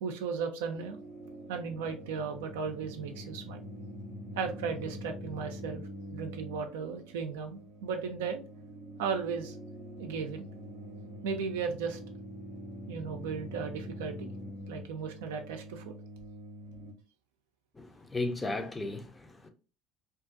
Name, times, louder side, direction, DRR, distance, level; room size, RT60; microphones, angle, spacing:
voice 1, 0.0-1.0 1.5-3.6 4.4-5.8 6.1-8.4 9.0-9.6 10.0-10.5 11.2-12.0 12.9-14.3 14.7-15.9, right 5 dB, 75° right, 0.4 m, -35 dB
sound 1, 0.7-16.9, equal, 70° left, 1.1 m, -45 dB
voice 2, 17.7-19.5, left 2 dB, 20° left, 0.5 m, -35 dB
2.5 x 2.5 x 2.5 m
hypercardioid pair, 65°, 0 cm